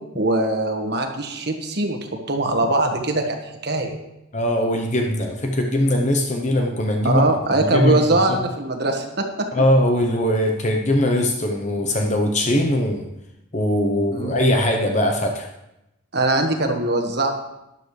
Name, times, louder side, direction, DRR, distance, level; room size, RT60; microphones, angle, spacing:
voice 1, 0.1-4.0 7.0-9.5 14.1-14.3 16.1-17.3, right 2 dB, 55° right, 3 dB, 1.5 m, -22 dB
voice 2, 4.3-7.2 7.5-8.4 9.5-13.1 13.5-15.5, left 1 dB, 35° left, 3 dB, 0.8 m, -21 dB
13.0 x 11.0 x 3.3 m, 0.90 s
head